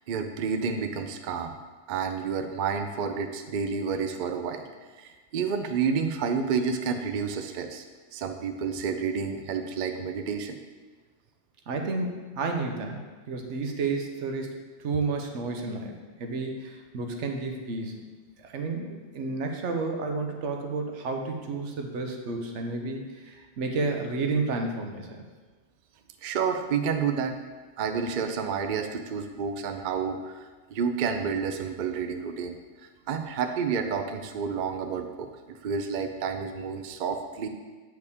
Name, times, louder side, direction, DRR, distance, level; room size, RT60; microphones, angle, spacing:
voice 1, 0.1-1.5 1.9-4.6 5.0-7.8 8.1-10.5 26.2-27.4 27.8-32.6 33.1-37.5, right 6 dB, 55° right, 6 dB, 0.5 m, -30 dB
voice 2, 11.7-13.0 13.3-15.9 16.2-18.0 18.4-25.3, right 3 dB, 80° right, 3 dB, 1.1 m, -31 dB
8.1 x 4.8 x 3.5 m, 1.3 s
omnidirectional pair, 1.2 m